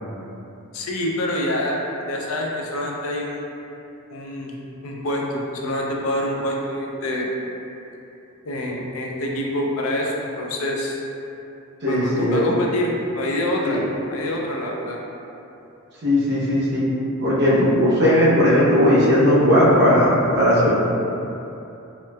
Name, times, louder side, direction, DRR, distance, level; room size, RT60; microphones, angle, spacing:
voice 1, 0.7-1.8 2.1-3.5 4.1-4.6 4.8-7.3 8.4-11.0 11.9-13.8 14.1-15.0, left 1 dB, 70° left, -1 dB, 0.4 m, -26 dB
voice 2, 11.8-12.4 13.7-13.9 16.0-16.8 17.2-20.1 20.3-20.7, equal, 50° right, -8 dB, 0.7 m, -17 dB
3.1 x 3.0 x 2.2 m, 2.9 s
head